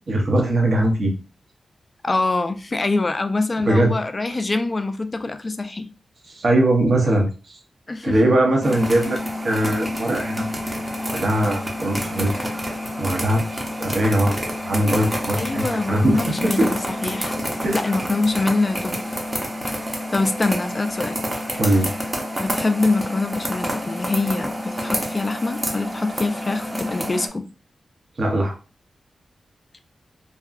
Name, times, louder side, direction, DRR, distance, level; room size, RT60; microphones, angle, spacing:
voice 1, 0.1-1.1 3.7-3.9 6.3-7.6 8.0-10.5 11.1-12.7 13.0-13.4 13.8-14.4 14.6-16.7 17.6-17.8 21.6-21.9 28.2-28.5, right 1 dB, 55° right, 0.7 m, -20 dB
voice 2, 2.0-5.9 7.9-8.4 15.4-17.4 17.7-19.0 20.1-21.2 22.3-27.5 29.7-29.8, left 3 dB, 35° left, 0.3 m, -24 dB
sound 1, 8.6-27.3, equal, 20° right, 0.7 m, -28 dB
2.7 x 2.4 x 2.4 m
cardioid pair, 70°, 0 cm